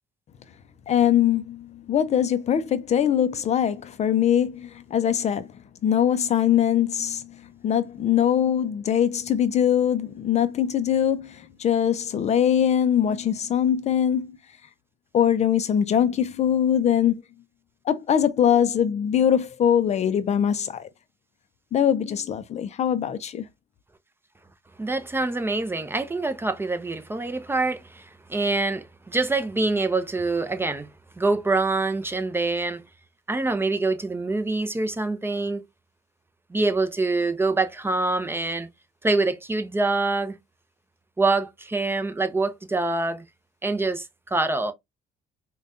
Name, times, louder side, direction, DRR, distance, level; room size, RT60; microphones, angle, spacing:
voice 1, 0.9-5.5 5.8-14.4 15.1-17.2 17.9-20.9 21.7-23.4, left 9 dB, 40° left, 0.4 m, -22 dB
voice 2, 24.8-30.9 31.2-32.8 33.3-35.6 36.5-38.7 39.0-40.4 41.2-43.2 43.6-44.7, right 3 dB, 15° right, 0.5 m, -25 dB
4.9 x 2.2 x 2.5 m
cardioid pair, 110°, 17 cm